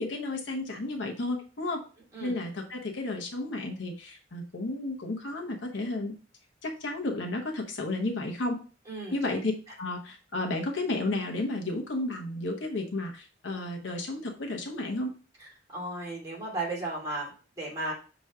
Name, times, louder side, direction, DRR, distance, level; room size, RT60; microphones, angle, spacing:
voice 1, 0.0-1.8 2.2-6.1 6.6-8.6 9.1-9.5 9.8-15.1, left 2 dB, 75° left, 1 dB, 1.0 m, -32 dB
voice 2, 8.9-9.3 15.4-17.9, right 2 dB, 20° right, -5 dB, 2.5 m, -35 dB
6.5 x 3.0 x 4.7 m, 0.37 s
head